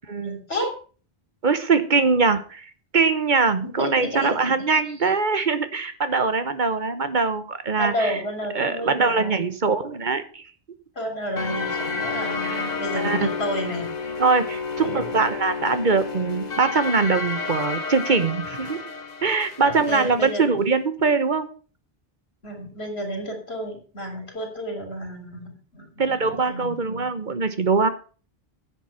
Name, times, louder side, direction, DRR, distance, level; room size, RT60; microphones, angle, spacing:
voice 1, 0.2-0.8 3.6-4.4 7.8-9.5 11.0-13.9 14.8-15.1 19.6-20.7 22.4-27.1, equal, 90° left, 4 dB, 3.7 m, -31 dB
voice 2, 1.4-8.1 8.5-10.4 12.4-12.7 12.9-13.3 14.2-18.8 19.2-21.5 26.0-27.9, right 4 dB, 50° right, 11 dB, 1.2 m, -22 dB
sound 1, 11.4-20.1, left 4 dB, 45° left, 1.2 m, -30 dB
10.5 x 8.1 x 5.7 m, 0.38 s
omnidirectional pair, 1.0 m